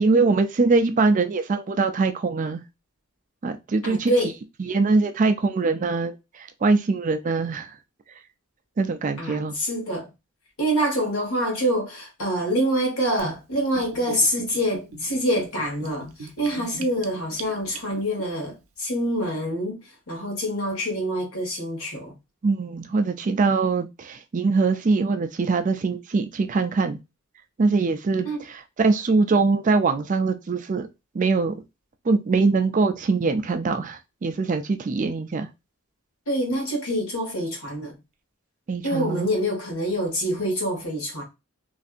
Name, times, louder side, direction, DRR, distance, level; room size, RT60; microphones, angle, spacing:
voice 1, 0.0-2.6 3.4-4.1 4.6-7.7 8.8-9.6 22.4-27.0 27.6-30.9 31.1-31.5 32.1-35.5 38.7-39.3, right 4 dB, 35° right, 0.4 m, -22 dB
voice 2, 3.8-4.3 9.2-10.1 10.6-19.8 20.1-22.1 28.2-28.4 36.3-38.0 38.8-41.2, equal, 70° left, 1.6 m, -26 dB
Gurgling / Bathtub (filling or washing), 13.2-18.2, right 3 dB, 90° right, 0.6 m, -40 dB
3.2 x 2.6 x 2.4 m
head